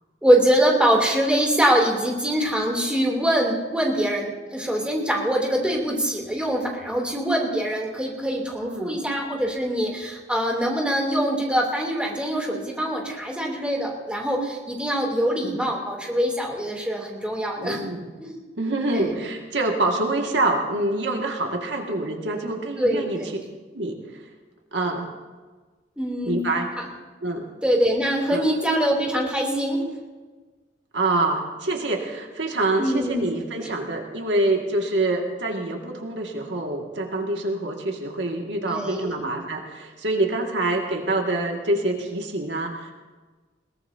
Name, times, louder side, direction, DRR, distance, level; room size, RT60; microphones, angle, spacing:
voice 1, 0.2-17.8 18.2-18.4 18.9-19.2 22.8-23.3 26.0-26.4 26.8-26.9 27.6-29.8 32.8-33.2 33.6-33.7 38.7-39.3, equal, 5° right, -1 dB, 2.9 m, -23 dB
voice 2, 8.6-9.0 15.4-15.6 17.6-18.1 18.6-23.2 23.7-24.2 24.7-25.1 26.2-26.7 27.2-27.5 28.3-28.5 30.9-42.9, right 2 dB, 80° right, 1 dB, 2.0 m, -26 dB
21.5 x 18.0 x 2.8 m, 1.3 s
head